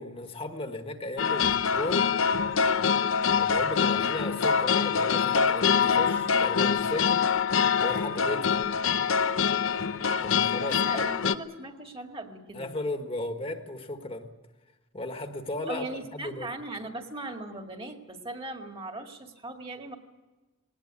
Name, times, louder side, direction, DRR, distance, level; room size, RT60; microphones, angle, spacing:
voice 1, 0.0-2.1 3.4-7.3 7.8-8.6 10.2-11.0 12.5-14.3 14.9-16.5, left 2 dB, 30° left, 6 dB, 1.4 m, -35 dB
sound 1, 1.2-11.3, left 6 dB, 80° left, 0.8 m, -25 dB
voice 2, 10.7-12.7 15.7-20.0, right 2 dB, 25° right, 4 dB, 2.0 m, -39 dB
19.5 x 19.0 x 9.7 m, 1.2 s
head